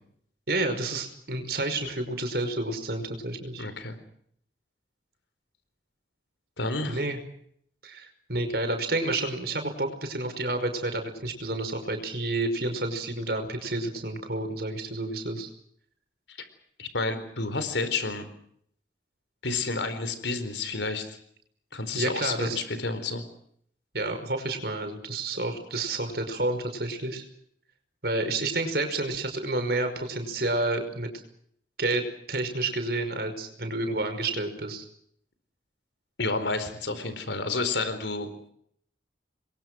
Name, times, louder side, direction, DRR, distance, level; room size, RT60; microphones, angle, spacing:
voice 1, 0.5-3.7 6.9-7.2 7.8-15.5 21.9-22.6 23.9-27.3 28.0-31.1 31.8-34.8, right 2 dB, 60° right, 6 dB, 5.6 m, -30 dB
voice 2, 3.6-3.9 6.6-7.0 16.3-16.5 16.8-18.3 19.4-21.2 21.7-23.2 36.2-38.3, left 3 dB, 85° left, 11 dB, 4.3 m, -30 dB
28.5 x 22.5 x 6.3 m, 0.67 s
head